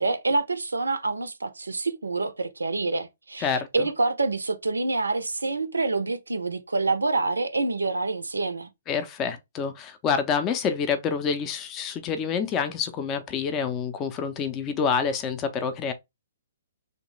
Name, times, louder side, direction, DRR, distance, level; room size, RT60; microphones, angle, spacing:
voice 1, 0.0-8.7, right 3 dB, 80° right, 0.4 m, -27 dB
voice 2, 3.4-3.9 8.9-15.9, left 6 dB, 25° left, 0.4 m, -27 dB
3.0 x 2.1 x 3.1 m
figure-of-eight pair, 125°, 0 cm